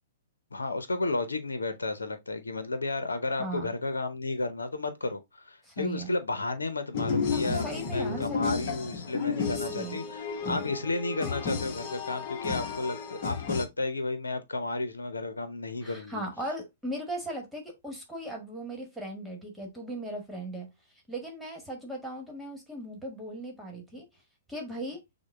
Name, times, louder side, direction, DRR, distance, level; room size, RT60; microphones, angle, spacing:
voice 1, 0.5-16.2, left 2 dB, 85° left, 0.8 m, -32 dB
voice 2, 3.4-3.7 5.6-6.1 7.5-8.7 9.5-10.1 10.4-10.7 15.8-20.7 21.1-24.1 24.5-25.0, right 1 dB, ahead, 1.6 m, -38 dB
sound 1, 6.9-13.7, left 5 dB, 45° left, 1.1 m, -32 dB
6.3 x 2.3 x 3.4 m
hypercardioid pair, 120°, 0 cm